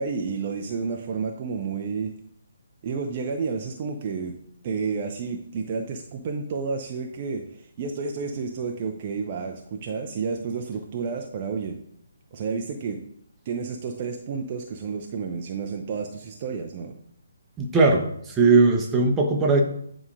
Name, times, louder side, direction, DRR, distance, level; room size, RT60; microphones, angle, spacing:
voice 1, 0.0-2.1 2.8-4.3 4.6-11.8 12.3-13.0 13.5-17.0, right 5 dB, 30° right, 3 dB, 0.5 m, -30 dB
voice 2, 17.6-18.1 18.4-19.6, right 3 dB, 10° right, 1 dB, 0.9 m, -18 dB
9.5 x 4.8 x 2.6 m, 0.71 s
figure-of-eight pair, 140°, 0 cm